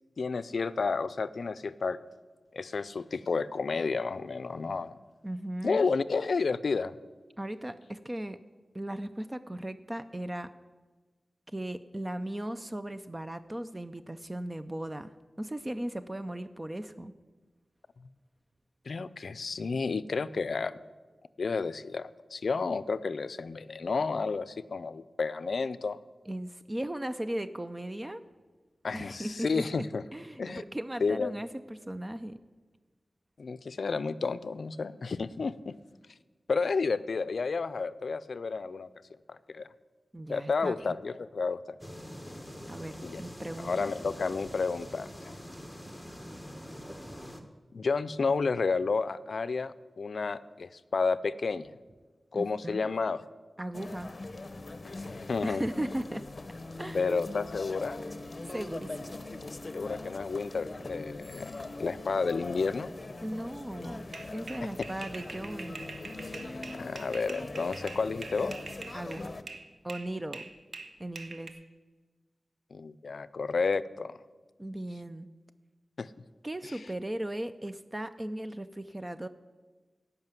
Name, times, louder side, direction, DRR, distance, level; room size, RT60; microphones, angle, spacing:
voice 1, 0.2-2.0 2.5-5.0 5.6-7.0 18.9-20.8 21.4-26.0 28.8-30.0 30.4-30.6 31.0-31.4 33.4-35.8 36.5-38.9 39.3-39.7 40.3-41.8 43.0-43.2 43.6-45.4 47.7-51.7 52.3-53.2 54.8-55.6 56.9-58.0 59.7-61.5 61.8-62.9 64.6-64.7 66.8-68.5 72.7-74.2 76.0-76.1 76.6-76.8, left 4 dB, 75° left, 15 dB, 0.4 m, -31 dB
voice 2, 5.2-5.8 7.4-8.4 8.7-10.5 11.5-15.1 15.4-17.1 26.3-28.3 28.9-29.8 30.1-32.4 40.1-41.0 42.7-43.9 52.3-52.9 53.6-54.1 55.4-56.2 56.8-57.1 58.5-59.2 63.2-64.1 64.3-65.8 68.9-69.3 69.8-70.5 71.0-71.6 74.6-75.3 76.4-79.3, right 1 dB, 20° right, 10 dB, 0.5 m, -37 dB
sound 1, 41.8-47.4, equal, ahead, 1.3 m, -44 dB
sound 2, 53.7-69.4, left 2 dB, 40° left, 0.8 m, -41 dB
sound 3, 64.1-69.6 69.9-71.5, right 3 dB, 70° right, 1.1 m, -44 dB
15.5 x 5.7 x 9.1 m, 1.3 s
wide cardioid pair, 95°, 0 cm